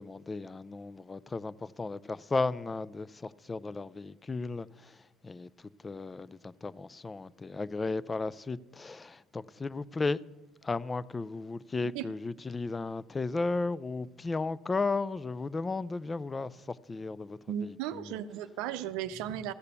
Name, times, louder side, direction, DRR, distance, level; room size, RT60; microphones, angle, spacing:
voice 1, 0.0-4.7 5.2-5.5 5.8-10.2 10.6-16.5 16.9-18.0, left 3 dB, 25° left, 0.4 m, -34 dB
voice 2, 17.5-19.5, right 10 dB, 70° right, 0.6 m, -35 dB
14.5 x 6.6 x 6.9 m
hypercardioid pair, 60°, 0 cm